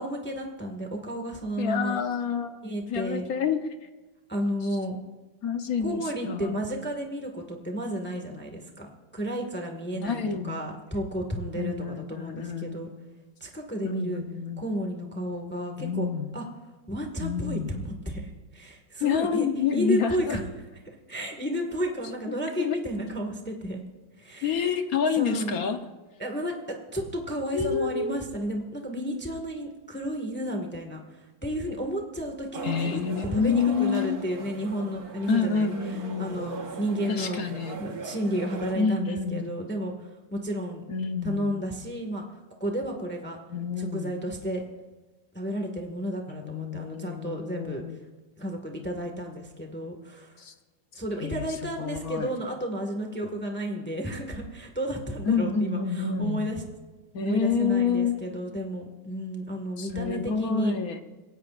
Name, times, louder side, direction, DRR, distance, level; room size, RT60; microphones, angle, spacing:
voice 1, 0.0-2.0 2.6-3.3 4.3-5.0 5.8-8.9 9.1-12.9 13.4-14.2 14.6-16.1 16.3-16.4 16.9-19.4 19.7-20.4 20.9-23.8 24.2-24.7 25.2-25.6 26.2-26.5 26.9-33.0 33.3-37.4 37.8-40.8 41.2-42.2 42.6-43.4 43.8-44.7 45.3-47.8 48.4-50.4 50.9-56.6 57.2-60.7, equal, 5° left, 2 dB, 1.5 m, -32 dB
voice 2, 1.6-3.7 5.4-6.6 9.9-10.6 11.5-13.0 13.8-14.6 15.8-16.3 17.2-17.7 19.0-20.4 22.3-22.8 24.4-25.8 27.5-28.2 32.6-34.2 35.3-36.5 37.1-37.8 38.7-39.4 40.9-41.5 43.5-44.2 46.3-48.0 50.4-50.5 51.2-52.3 55.2-56.6 57.1-58.2 59.8-61.0, left 6 dB, 55° left, 7 dB, 1.3 m, -28 dB
sound 1, 32.5-38.7, right 4 dB, 55° right, 1.8 m, -40 dB
28.0 x 16.5 x 2.5 m, 1.2 s
omnidirectional pair, 2.1 m